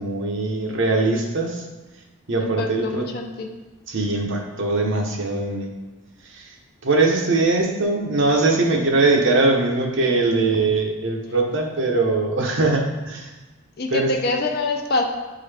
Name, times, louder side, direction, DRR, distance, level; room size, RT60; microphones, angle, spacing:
voice 1, 0.0-1.7 2.3-3.0 3.9-5.7 6.2-6.5 6.8-13.3 13.9-14.1, right 3 dB, 60° right, 1 dB, 0.9 m, -21 dB
voice 2, 2.4-3.5 13.8-15.0, left 2 dB, 50° left, 3 dB, 0.7 m, -25 dB
9.2 x 3.8 x 3.4 m, 1.2 s
head